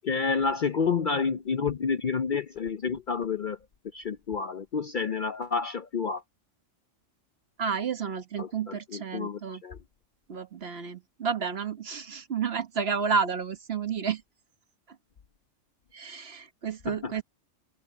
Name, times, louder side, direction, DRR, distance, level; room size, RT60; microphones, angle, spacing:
voice 1, 0.0-3.6 3.9-6.2 8.4-9.8 16.9-17.2, left 5 dB, 50° left, 0.6 m, -29 dB
voice 2, 7.6-9.6 10.3-14.2 15.9-17.2, right 6 dB, 55° right, 1.4 m, -31 dB
omnidirectional pair, 1.3 m